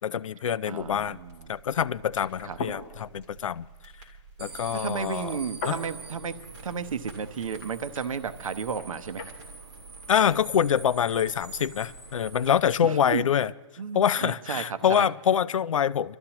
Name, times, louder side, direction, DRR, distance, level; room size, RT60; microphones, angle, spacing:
voice 1, 0.0-1.2 1.5-3.7 4.4-5.4 5.7-5.8 10.1-13.5 13.9-16.2, left 8 dB, 75° left, 18 dB, 0.4 m, -25 dB
voice 2, 0.7-1.5 2.4-2.6 4.7-6.3 6.6-9.3 12.8-13.3 13.8-15.1, right 6 dB, 85° right, 10 dB, 0.9 m, -33 dB
sound 1, 0.8-12.7, right 4 dB, 30° right, 2.4 m, -50 dB
sound 2, 2.2-9.4, left 3 dB, 20° left, 0.8 m, -43 dB
sound 3, 4.4-12.6, right 4 dB, 50° right, 1.9 m, -45 dB
25.5 x 13.0 x 2.9 m, 1.3 s
hypercardioid pair, 180°, 17 cm